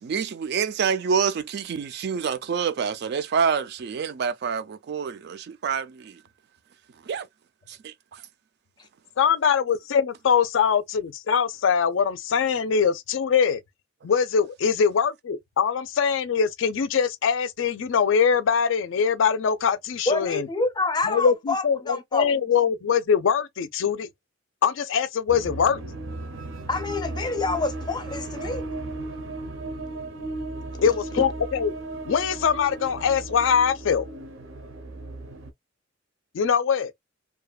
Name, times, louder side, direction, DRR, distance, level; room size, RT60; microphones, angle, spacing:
voice 1, 0.0-6.2 7.1-7.3 7.7-8.2, right 6 dB, 60° right, 0.4 m, -27 dB
voice 2, 9.2-13.6 14.0-20.5 21.0-24.1 24.6-25.8 30.8-31.7 32.1-34.0 36.3-36.9, left 6 dB, 80° left, 0.4 m, -22 dB
voice 3, 20.1-22.3 26.7-28.7, left 3 dB, 20° left, 0.5 m, -27 dB
sound 1, 25.3-35.5, right 2 dB, 90° right, 0.7 m, -36 dB
2.8 x 2.2 x 2.3 m
head